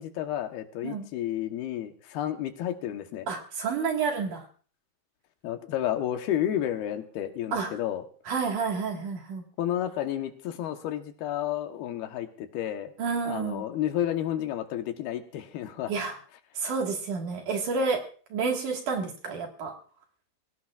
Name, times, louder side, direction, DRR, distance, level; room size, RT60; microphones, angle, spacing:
voice 1, 0.0-3.3 5.4-8.0 9.6-12.9 13.2-15.9, left 11 dB, 75° left, 6 dB, 3.0 m, -31 dB
voice 2, 3.3-4.4 7.5-7.7 8.3-9.4 13.0-13.6 15.9-16.2 16.5-18.0 18.3-19.7, right 5 dB, 55° right, 2 dB, 3.0 m, -29 dB
24.0 x 17.0 x 2.4 m, 0.43 s
omnidirectional pair, 4.6 m